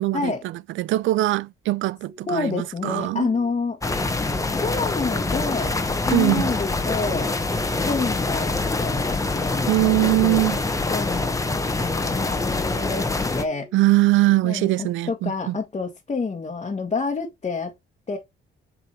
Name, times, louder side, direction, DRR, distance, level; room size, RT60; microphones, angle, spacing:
voice 1, 0.0-3.3 6.1-6.5 9.7-10.6 13.7-15.6, right 17 dB, 75° right, 0.4 m, -21 dB
sound 1, 2.1-2.6 3.0-3.5 4.0-4.4 4.9-5.4 5.8-6.3 6.8-7.3 7.7-8.2 8.6-9.1 9.6-10.1 10.5-11.0 11.5-11.9 12.4-12.9 13.3-13.8 14.3-14.8, left 2 dB, 5° right, 1.4 m, -48 dB
voice 2, 2.3-3.8 4.5-5.7 6.0-7.3 7.9-10.4 10.9-11.4 11.8-13.7 14.4-17.7 18.1-18.2, left 4 dB, 30° left, 1.5 m, -28 dB
sound 2, 3.8-13.4, left 3 dB, 15° left, 1.2 m, -25 dB
7.6 x 3.7 x 4.4 m
cardioid pair, 90°, 20 cm